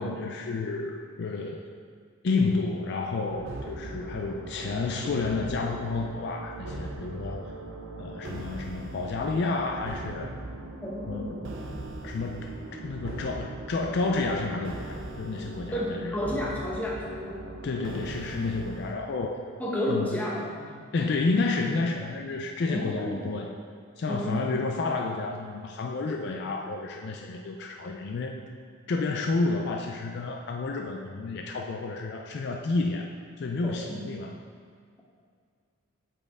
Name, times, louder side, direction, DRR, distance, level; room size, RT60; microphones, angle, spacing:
voice 1, 0.0-1.7 2.2-7.5 8.0-10.3 11.1-11.4 12.0-16.2 17.6-19.4 19.9-20.2 20.9-23.6 24.0-28.4 28.9-33.1 33.4-34.4, left 3 dB, 50° left, 2 dB, 0.3 m, -30 dB
sound 1, 3.3-19.0, right 2 dB, 55° right, 0.6 m, -39 dB
voice 2, 10.8-11.4 15.7-17.4 19.6-20.8 22.7-23.4 24.1-24.5 33.6-34.1, left 1 dB, 5° left, -5 dB, 0.9 m, -32 dB
8.4 x 4.3 x 3.5 m, 2.1 s
head